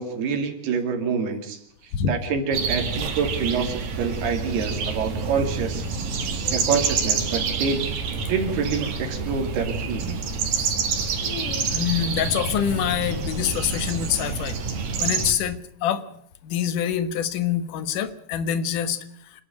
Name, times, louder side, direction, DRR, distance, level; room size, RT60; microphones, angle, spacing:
voice 1, 0.0-1.6 2.1-5.8 6.5-7.9 8.3-10.2, right 5 dB, 80° right, 5 dB, 4.5 m, -26 dB
sound 1, 2.5-15.3, right 5 dB, 65° right, 3.9 m, -27 dB
voice 2, 10.6-14.6 15.0-16.0 16.4-19.0, left 9 dB, 65° left, 12 dB, 2.6 m, -26 dB
27.5 x 11.0 x 9.3 m, 0.66 s
omnidirectional pair, 4.5 m